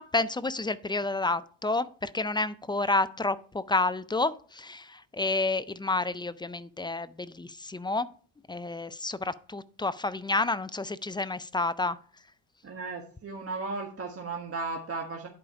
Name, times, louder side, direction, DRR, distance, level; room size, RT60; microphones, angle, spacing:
voice 1, 0.0-8.1 8.5-12.0, left 2 dB, 10° left, 0.3 m, -30 dB
voice 2, 12.6-15.3, right 3 dB, 30° right, 1.5 m, -35 dB
11.0 x 5.0 x 4.8 m
supercardioid pair, 80°, 47 cm